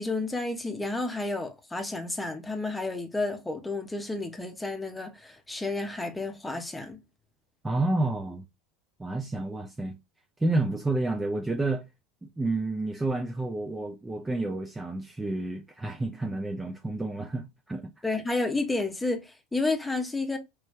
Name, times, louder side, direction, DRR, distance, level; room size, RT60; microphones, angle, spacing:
voice 1, 0.0-7.0 18.0-20.4, left 2 dB, 10° left, 0.9 m, -31 dB
voice 2, 7.6-8.4 9.0-10.0 10.4-11.8 12.4-17.8, right 2 dB, 15° right, 0.6 m, -30 dB
3.2 x 3.1 x 3.1 m
hypercardioid pair, 80°, 0 cm